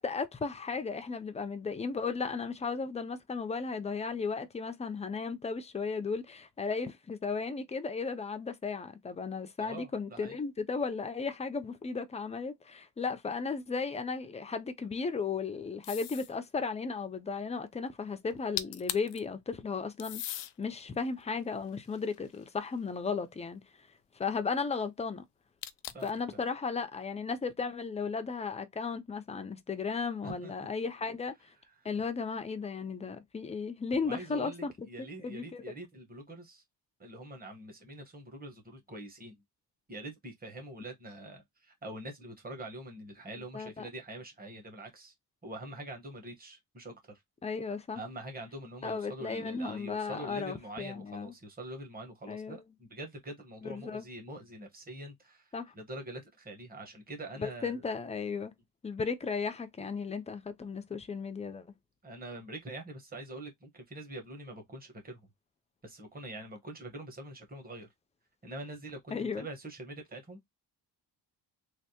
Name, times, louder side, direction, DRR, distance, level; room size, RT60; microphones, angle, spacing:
voice 1, 0.0-20.2 20.6-23.6 24.1-25.2 26.0-31.5 31.8-34.9 35.2-35.7 43.5-43.8 47.4-48.0 48.8-51.3 52.3-52.6 53.6-54.1 55.5-55.7 57.4-58.5 58.8-61.7 69.1-69.5, left 5 dB, 20° left, 0.3 m, -35 dB
voice 2, 9.6-10.4 25.9-26.2 30.2-30.5 31.6-31.9 34.0-36.6 37.0-39.4 39.9-45.1 45.4-47.2 47.9-57.8 62.0-65.2 65.8-67.9 68.4-70.5, right 1 dB, 20° right, 1.1 m, -44 dB
Opening Can, 15.8-16.4 18.3-18.4 18.6-19.2 20.0-20.5 21.2-22.7 25.6-26.2, left 12 dB, 80° left, 0.5 m, -39 dB
3.3 x 2.5 x 2.8 m
wide cardioid pair, 155°, 42 cm